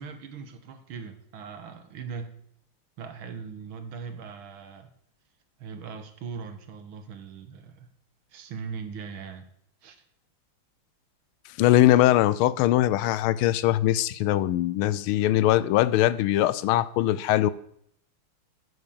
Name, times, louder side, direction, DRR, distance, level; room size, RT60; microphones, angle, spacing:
voice 1, 0.0-2.3 3.0-4.9 5.6-7.9 8.3-9.5 9.8-10.0, right 6 dB, 75° right, 1.9 m, -40 dB
voice 2, 11.6-17.5, left 14 dB, 85° left, 1.4 m, -21 dB
9.4 x 6.3 x 7.0 m
omnidirectional pair, 2.3 m